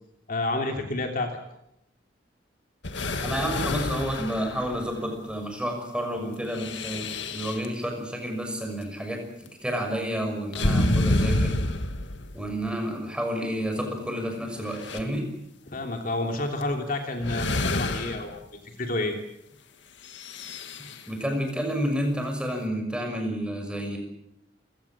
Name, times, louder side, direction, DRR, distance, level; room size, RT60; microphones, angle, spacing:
voice 1, 0.3-1.3 15.7-18.4 18.6-19.2, left 2 dB, 50° left, 3 dB, 3.1 m, -29 dB
sound 1, 2.8-5.1 6.5-7.7 10.5-12.5 13.8-13.9 14.4-15.0 16.6-16.7 17.2-18.4 20.1-21.0, left 1 dB, 80° left, 2.1 m, -28 dB
voice 2, 3.2-9.2 9.6-11.6 12.3-15.3 21.1-24.0, equal, 5° right, 3 dB, 6.1 m, -30 dB
28.5 x 17.5 x 7.4 m, 0.84 s
head